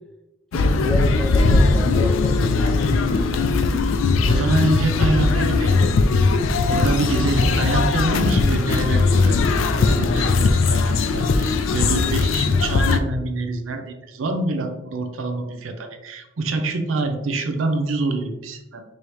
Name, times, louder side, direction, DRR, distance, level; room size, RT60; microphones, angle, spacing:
sound 1, 0.5-13.0, left 3 dB, 85° left, 0.4 m, -19 dB
voice 1, 0.5-2.9, left 1 dB, 5° left, 1 dB, 0.5 m, -29 dB
voice 2, 4.3-5.9 6.7-18.8, right 2 dB, 90° right, 6 dB, 0.5 m, -25 dB
4.9 x 2.7 x 3.1 m, 0.97 s
head